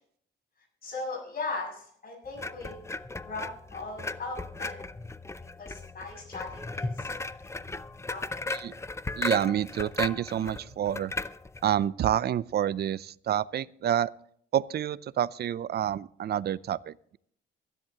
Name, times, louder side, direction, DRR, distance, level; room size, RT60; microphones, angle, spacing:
voice 1, 0.8-2.8 3.2-4.9 5.6-7.1 8.1-8.2 8.5-8.6, left 3 dB, 50° left, -2 dB, 6.9 m, -38 dB
sound 1, 2.4-11.7, left 3 dB, 15° left, 0.6 m, -36 dB
voice 2, 9.2-11.1 11.6-14.1 14.5-17.2, right 10 dB, 55° right, 19 dB, 0.5 m, -28 dB
23.5 x 11.0 x 2.9 m, 0.63 s
cardioid pair, 90°, 20 cm